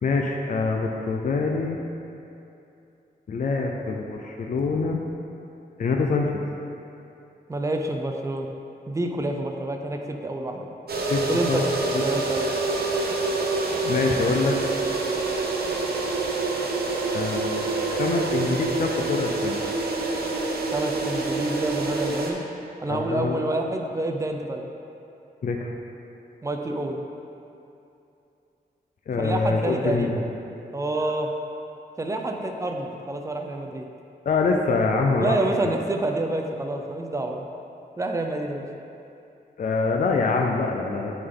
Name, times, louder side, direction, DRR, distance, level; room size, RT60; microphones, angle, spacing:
voice 1, 0.0-1.8 3.3-5.0 5.8-6.3 11.1-11.2 11.5-11.7 11.9-12.0 13.8-14.6 17.1-19.6 22.9-23.4 25.4-25.7 29.1-30.2 34.3-35.4 39.6-41.1, left 4 dB, 50° left, 1 dB, 0.5 m, -25 dB
voice 2, 7.5-8.5 8.9-10.7 11.3-11.6 12.0-12.5 20.7-22.4 22.8-24.6 26.4-27.0 29.2-30.1 30.7-31.3 32.0-33.9 35.2-37.4 38.0-38.7, right 2 dB, 20° right, 3 dB, 0.5 m, -28 dB
sound 1, 10.9-22.3, right 3 dB, 65° right, 0.8 m, -26 dB
9.6 x 3.9 x 3.7 m, 2.7 s
wide cardioid pair, 145°, 17 cm